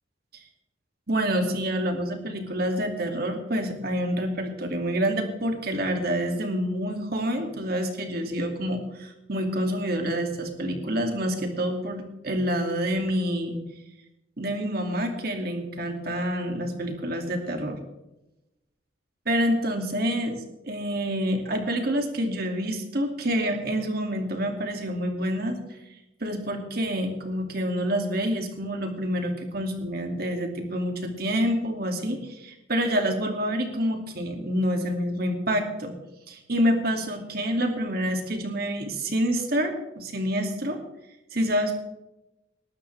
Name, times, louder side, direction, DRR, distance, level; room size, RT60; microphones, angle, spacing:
voice 1, 1.1-13.6 14.4-17.8 19.3-25.6 26.2-36.0 36.3-40.8 41.3-41.7, equal, 50° right, 4 dB, 2.5 m, -27 dB
20.0 x 13.0 x 3.4 m, 0.93 s
head